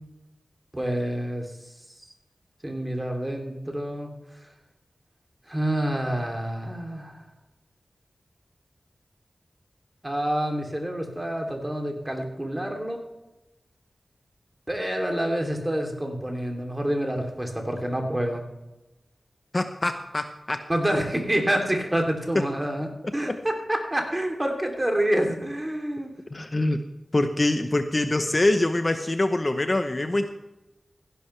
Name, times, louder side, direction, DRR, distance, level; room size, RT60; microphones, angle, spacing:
voice 1, 0.7-1.5 2.6-4.1 5.5-7.2 10.0-13.0 14.7-18.5 20.7-26.1, right 1 dB, 20° right, 2 dB, 2.9 m, -27 dB
voice 2, 19.5-20.6 20.9-21.0 22.3-22.4 23.3-23.4 26.3-26.8 27.1-30.3, left 2 dB, 35° left, 8 dB, 0.8 m, -24 dB
15.5 x 11.5 x 3.3 m, 0.99 s
wide cardioid pair, 65°, 0 cm